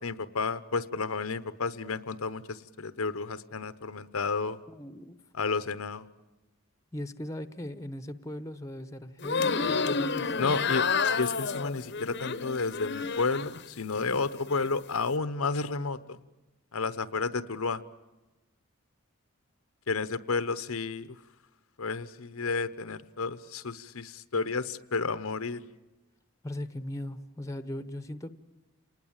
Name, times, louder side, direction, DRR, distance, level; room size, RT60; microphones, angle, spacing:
voice 1, 0.0-4.6 5.3-6.1 10.4-10.8 11.2-16.2 16.7-17.8 19.9-21.1 21.8-25.6, left 4 dB, 75° left, 0.9 m, -31 dB
voice 2, 4.7-5.2 6.9-10.7 26.4-28.3, left 1 dB, 15° left, 0.9 m, -39 dB
sound 1, 9.2-13.6 14.0-14.7, left 5 dB, 50° left, 0.9 m, -30 dB
28.0 x 20.0 x 8.8 m
head